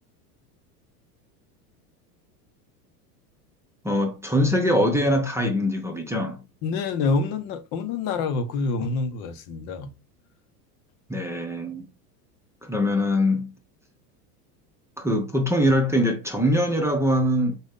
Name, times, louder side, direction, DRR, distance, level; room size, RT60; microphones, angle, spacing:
voice 1, 3.8-6.4 11.1-11.9 12.6-13.5 15.0-17.6, equal, 5° right, 0.7 m, -23 dB
voice 2, 6.6-9.9, left 4 dB, 55° left, 0.9 m, -27 dB
4.1 x 2.6 x 3.5 m
hypercardioid pair, 100°, 48 cm